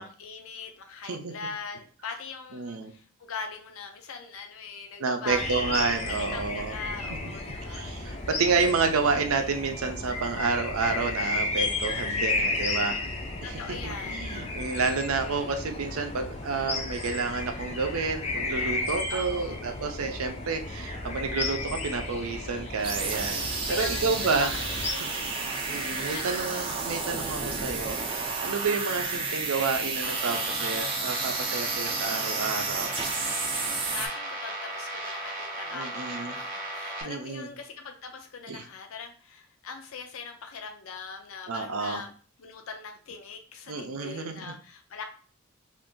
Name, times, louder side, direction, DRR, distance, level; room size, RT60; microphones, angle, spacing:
voice 1, 0.0-7.9 13.4-14.5 17.2-17.4 19.1-19.6 23.7-25.5 26.1-26.8 33.8-42.1 42.4-45.1, left 5 dB, 75° left, 4 dB, 0.5 m, -41 dB
voice 2, 2.5-2.9 5.0-6.8 7.7-13.0 13.4-24.5 25.0-25.1 25.7-32.9 35.7-36.4 37.0-37.5 38.5-38.6 41.5-42.0 43.7-44.5, right 4 dB, 80° right, 5 dB, 0.5 m, -30 dB
sound 1, 5.3-24.9, left 2 dB, 30° left, 0.4 m, -33 dB
sound 2, 22.8-34.1, right 4 dB, 25° right, 0.5 m, -31 dB
sound 3, 30.0-37.0, right 1 dB, 40° right, 0.9 m, -36 dB
2.5 x 2.5 x 3.6 m, 0.41 s
head